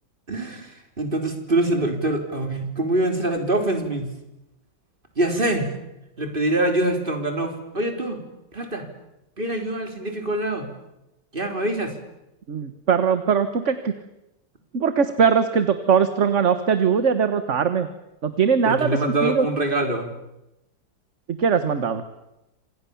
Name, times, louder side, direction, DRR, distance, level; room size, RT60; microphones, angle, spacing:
voice 1, 0.3-4.1 5.2-5.7 6.2-8.2 8.5-8.9 9.4-10.7 11.3-12.0 18.6-20.1, right 1 dB, 25° right, 5 dB, 4.1 m, -24 dB
voice 2, 12.5-13.9 14.7-17.9 18.2-19.5 21.3-22.0, right 6 dB, 45° right, 10 dB, 1.5 m, -21 dB
28.0 x 27.0 x 7.1 m, 0.91 s
omnidirectional pair, 2.0 m